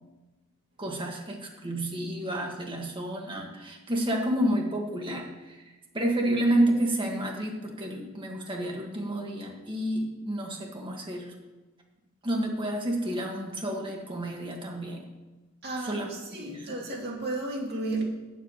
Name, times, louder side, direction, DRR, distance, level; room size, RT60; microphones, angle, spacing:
voice 1, 0.8-5.6 5.9-11.3 12.2-15.0 15.8-16.7, right 1 dB, 25° right, 0 dB, 1.7 m, -30 dB
voice 2, 15.6-18.0, right 2 dB, 50° right, -2 dB, 2.6 m, -33 dB
8.3 x 7.7 x 7.4 m, 1.2 s
head